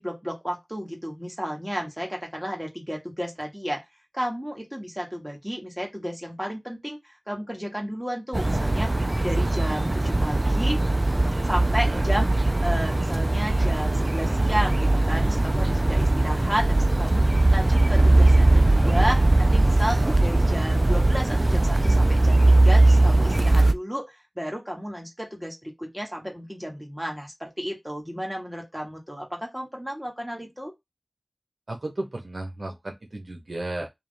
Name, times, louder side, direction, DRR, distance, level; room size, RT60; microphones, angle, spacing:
voice 1, 0.0-3.8 4.1-8.9 9.2-10.8 11.4-12.3 12.6-17.3 17.5-30.7, equal, 5° right, 1.8 m, -32 dB
sound 1, 8.3-23.7, right 2 dB, 40° right, 0.4 m, -20 dB
voice 2, 11.7-12.1 31.7-33.9, right 2 dB, 80° right, 1.1 m, -34 dB
3.6 x 3.0 x 3.4 m
wide cardioid pair, 45°, 0 cm